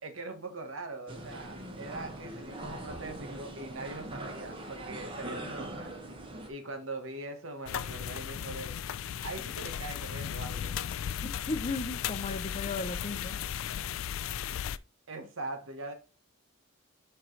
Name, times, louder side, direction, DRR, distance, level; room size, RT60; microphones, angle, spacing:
voice 1, 0.0-6.0 6.5-8.8 9.2-10.8 15.1-15.9, right 2 dB, 75° right, 1.3 m, -41 dB
sound 1, 1.1-6.5, right 1 dB, 25° right, 1.0 m, -42 dB
sound 2, 7.7-14.8, left 9 dB, 80° left, 0.4 m, -36 dB
voice 2, 11.2-13.4, left 3 dB, 30° left, 0.6 m, -36 dB
6.5 x 4.5 x 3.2 m
head